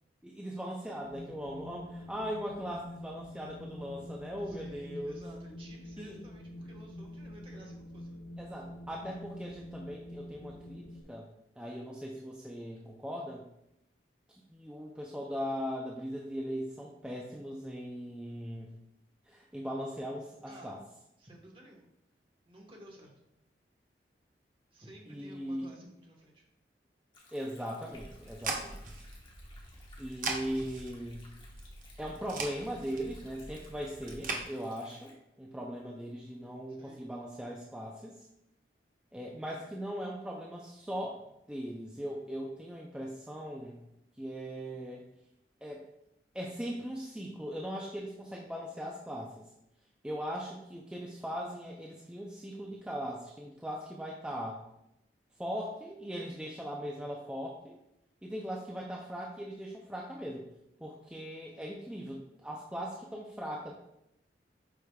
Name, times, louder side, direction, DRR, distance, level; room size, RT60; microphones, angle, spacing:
voice 1, 0.2-5.2 6.0-6.1 8.4-11.3 11.6-13.5 14.5-18.7 19.3-20.8 25.1-25.7 27.3-28.8 30.0-31.3 32.0-38.3 39.1-41.2 41.5-43.8 44.2-45.0 45.6-45.8 46.3-49.4 50.0-54.6 55.4-57.7 58.2-60.5 60.8-63.7, equal, 5° right, -2 dB, 0.5 m, -39 dB
Wind, 1.0-11.0, left 1 dB, 85° left, 0.9 m, -46 dB
voice 2, 4.4-8.2 20.5-20.8 21.2-21.9 22.5-23.1 24.7-26.4 36.7-37.1, right 1 dB, 30° right, 0 dB, 1.3 m, -53 dB
Stream, 27.1-35.1, left 2 dB, 30° left, 1.2 m, -60 dB
sound 1, 27.9-34.4, right 3 dB, 50° right, 0.9 m, -41 dB
7.9 x 5.0 x 2.3 m, 0.83 s
head